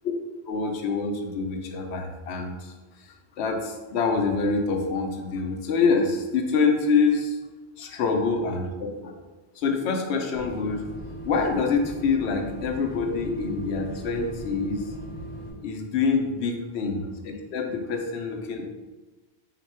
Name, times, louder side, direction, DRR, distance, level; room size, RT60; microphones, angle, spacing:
voice 1, 0.5-2.7 3.4-7.4 7.8-8.6 9.6-10.8 11.2-14.8 15.6-18.7, left 4 dB, 90° left, 4 dB, 0.9 m, -26 dB
sound 1, 10.3-15.5, equal, 90° right, 1.5 m, -38 dB
4.0 x 2.2 x 4.2 m, 1.2 s
omnidirectional pair, 1.1 m